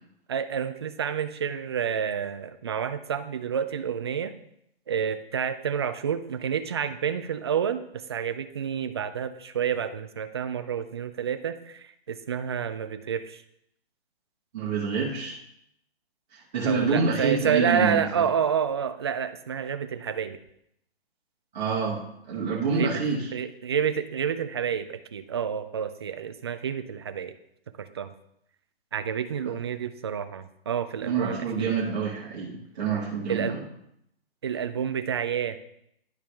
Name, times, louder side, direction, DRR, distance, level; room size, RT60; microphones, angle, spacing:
voice 1, 0.3-4.3 4.9-7.8 8.1-11.8 12.1-13.4 16.7-20.4 22.7-23.0 23.3-27.3 27.8-28.1 28.9-31.8 33.3-33.5 34.4-35.6, right 7 dB, 25° right, 10 dB, 0.3 m, -29 dB
voice 2, 14.5-15.4 16.3-18.2 21.5-23.3 31.0-33.6, right 5 dB, 45° right, -4 dB, 1.9 m, -27 dB
10.5 x 4.7 x 3.5 m, 0.74 s
hypercardioid pair, 140°, 31 cm